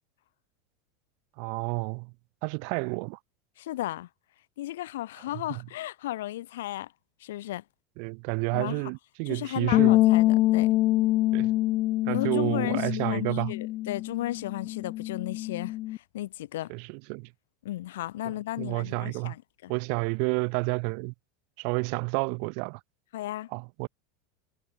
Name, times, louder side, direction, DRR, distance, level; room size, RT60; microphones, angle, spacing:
voice 1, 1.4-2.1 2.4-3.2 5.5-5.6 8.0-10.0 11.3-11.5 12.0-13.5 16.7-17.3 18.2-19.3 19.7-21.1 21.6-22.8 23.5-23.9, right 40 dB or more, 50° right, 0.9 m, -30 dB
voice 2, 3.6-4.1 4.6-6.9 7.2-7.6 8.5-8.8 9.3-10.8 12.1-16.7 17.6-19.7 23.1-23.5, left 15 dB, 85° left, 1.5 m, -35 dB
sound 1, 9.7-16.0, left 16 dB, 35° left, 1.3 m, -25 dB
supercardioid pair, 170°, 0 cm